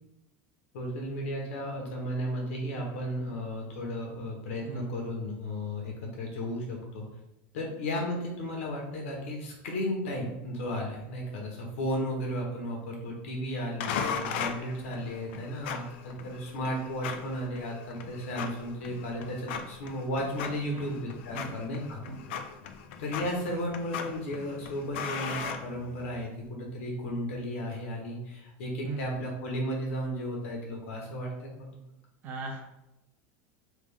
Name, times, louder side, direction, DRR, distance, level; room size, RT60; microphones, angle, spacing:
voice 1, 0.7-7.1 7.5-22.0 23.0-31.9, equal, 85° left, 0 dB, 1.1 m, -34 dB
voice 2, 4.6-5.0 20.6-21.1 21.3-21.7 22.0-22.3 28.8-29.1 32.2-32.6, right 3 dB, 30° right, 2 dB, 0.5 m, -38 dB
sound 1, 13.8-26.3, left 6 dB, 65° left, 0.4 m, -38 dB
3.4 x 2.4 x 3.5 m, 0.91 s
supercardioid pair, 175°, 7 cm